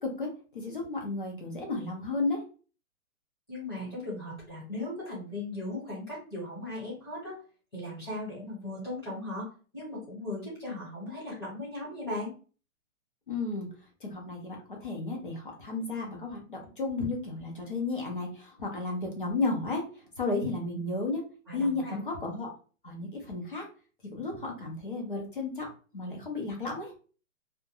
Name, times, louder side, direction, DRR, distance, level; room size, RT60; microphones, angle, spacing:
voice 1, 0.0-2.4 13.3-13.7 14.0-19.8 20.2-21.2 21.5-22.5 22.8-23.6 24.1-25.7 25.9-26.9, left 3 dB, 40° left, 0 dB, 0.6 m, -33 dB
voice 2, 3.5-7.4 7.7-9.5 9.7-12.3 20.6-20.8 21.5-22.0, left 1 dB, 20° left, -9 dB, 1.1 m, -37 dB
2.3 x 2.1 x 2.8 m, 0.37 s
hypercardioid pair, 180°, 42 cm